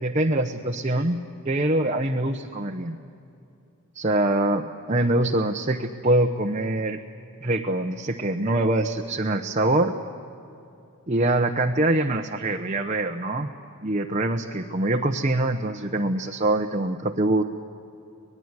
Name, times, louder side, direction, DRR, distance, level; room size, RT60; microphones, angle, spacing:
voice 1, 0.0-1.2 1.4-3.0 3.9-7.0 7.4-9.9 11.1-13.5 13.8-17.4, right 1 dB, 30° right, 2 dB, 1.0 m, -24 dB
25.0 x 20.0 x 9.7 m, 2.7 s
head